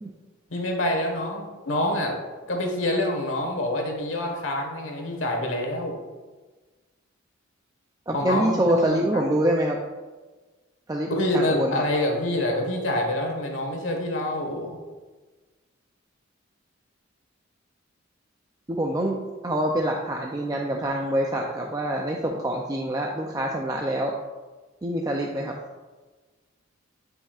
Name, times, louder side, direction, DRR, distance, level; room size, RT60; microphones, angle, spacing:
voice 1, 0.5-2.2 2.5-6.0 8.1-9.2 11.1-14.8, left 1 dB, 70° left, 2 dB, 1.4 m, -26 dB
voice 2, 8.1-9.8 10.9-11.9 18.7-24.1 24.8-25.6, right 1 dB, 20° right, 0 dB, 0.4 m, -25 dB
10.0 x 5.4 x 2.4 m, 1.3 s
head